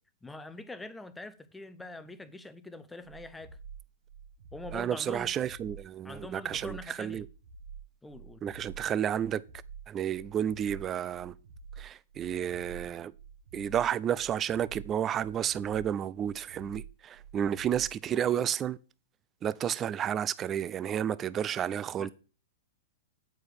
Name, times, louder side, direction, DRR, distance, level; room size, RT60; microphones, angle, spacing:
voice 1, 0.2-3.6 4.5-5.3 6.0-7.2 8.0-8.4 22.0-22.1, left 2 dB, 10° left, 0.6 m, -44 dB
sound 1, 3.0-18.0, right 6 dB, 65° right, 1.1 m, -48 dB
voice 2, 4.7-7.2 8.4-9.4 9.9-11.3 11.8-13.1 13.5-18.8 19.4-22.1, right 9 dB, 25° right, 0.3 m, -31 dB
8.4 x 4.5 x 4.8 m
hypercardioid pair, 110°, 0 cm